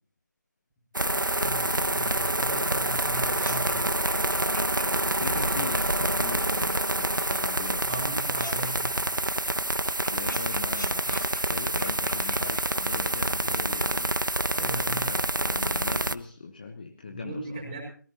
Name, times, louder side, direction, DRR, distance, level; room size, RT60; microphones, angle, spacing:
sound 1, 0.9-16.1, right 1 dB, 80° right, 0.9 m, -27 dB
voice 1, 1.1-3.9 7.8-9.2 14.5-15.2 17.0-17.8, right 2 dB, 15° right, -3 dB, 5.4 m, -38 dB
sound 2, 1.4-6.8 7.1-13.3, equal, 80° left, 5.2 m, -43 dB
voice 2, 5.1-7.9 10.1-17.6, left 4 dB, 25° left, 5 dB, 1.1 m, -39 dB
25.0 x 18.0 x 2.9 m, 0.42 s
figure-of-eight pair, 160°, 10 cm